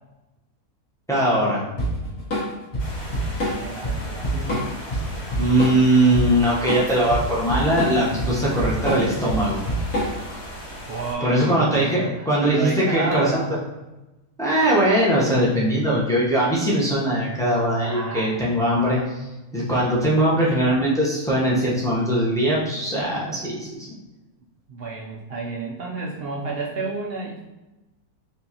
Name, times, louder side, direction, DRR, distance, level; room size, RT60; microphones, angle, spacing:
voice 1, 1.1-1.7 5.4-9.6 11.2-13.4 14.4-19.3 19.5-23.9, right 1 dB, 5° left, -7 dB, 0.5 m, -21 dB
Drum kit / Drum, 1.8-10.4, equal, 70° left, 1.7 m, -26 dB
sound 1, 2.8-11.1, equal, 90° left, 1.9 m, -37 dB
voice 2, 3.3-4.8 10.9-13.5 17.8-18.3 24.7-27.4, right 3 dB, 70° right, -3 dB, 0.5 m, -30 dB
4.6 x 2.6 x 2.8 m, 1.0 s
omnidirectional pair, 1.6 m